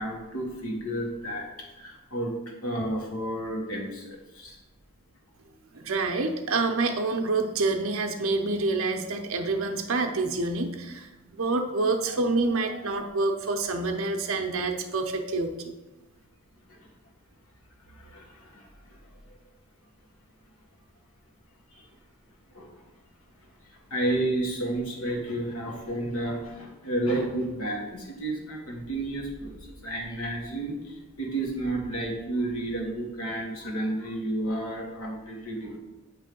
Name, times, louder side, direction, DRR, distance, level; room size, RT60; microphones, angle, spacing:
voice 1, 0.0-1.5 1.8-2.3 2.6-4.6 16.7-16.8 17.9-19.0 21.7-21.8 22.5-22.7 23.9-29.6 29.8-35.8, right 1 dB, 75° left, 0 dB, 1.5 m, -31 dB
voice 2, 5.7-15.5, right 3 dB, 65° right, 4 dB, 0.7 m, -27 dB
7.5 x 3.2 x 5.3 m, 1.1 s
head